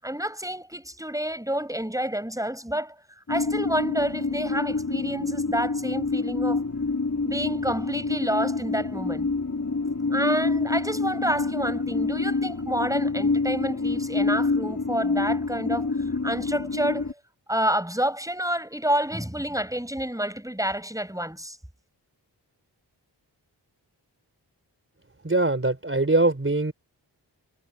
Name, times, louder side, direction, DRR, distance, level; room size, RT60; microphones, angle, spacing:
voice 1, 0.0-3.0 3.3-6.6 7.2-9.3 10.1-15.9 16.2-17.1 17.5-21.6, right 1 dB, 10° right, 7.3 m, -29 dB
sound 1, 3.3-17.1, left 3 dB, 40° left, 4.0 m, -27 dB
voice 2, 25.2-26.7, right 2 dB, 30° right, 4.1 m, -22 dB
cardioid pair, 45°, 43 cm